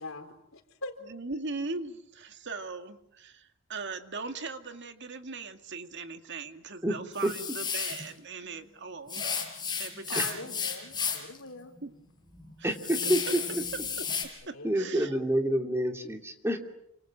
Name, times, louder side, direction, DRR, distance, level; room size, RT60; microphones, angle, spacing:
voice 1, 0.0-0.9 10.1-11.7 14.5-15.2, left 2 dB, 70° left, 7 dB, 3.9 m, -43 dB
voice 2, 1.1-10.5 11.8-11.9 12.6-12.8 13.0-13.1 14.0-15.1, right 4 dB, 60° right, 7 dB, 2.1 m, -40 dB
sound 1, 7.1-8.1 9.1-11.4 11.8-11.9 12.3-14.2, left 6 dB, 20° left, 5.8 m, -33 dB
voice 3, 12.6-13.4 14.6-16.6, right 1 dB, 10° right, 4 dB, 2.8 m, -27 dB
29.0 x 26.0 x 7.5 m, 0.80 s
head